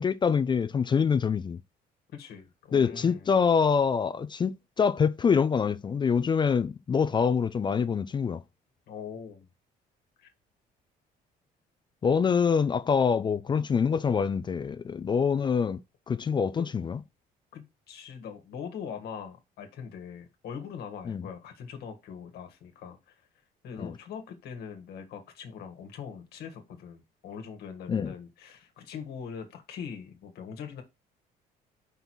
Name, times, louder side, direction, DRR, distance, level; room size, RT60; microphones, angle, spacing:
voice 1, 0.0-1.6 2.7-8.4 12.0-15.8 16.1-17.0 21.1-21.3 23.8-23.9 27.9-28.1, left 6 dB, 25° left, 0.4 m, -25 dB
voice 2, 2.1-3.3 8.9-9.5 10.2-10.3 16.6-16.7 17.5-23.0 23.6-30.8, left 7 dB, 70° left, 1.5 m, -42 dB
5.4 x 4.1 x 4.6 m
cardioid pair, 110°, 17 cm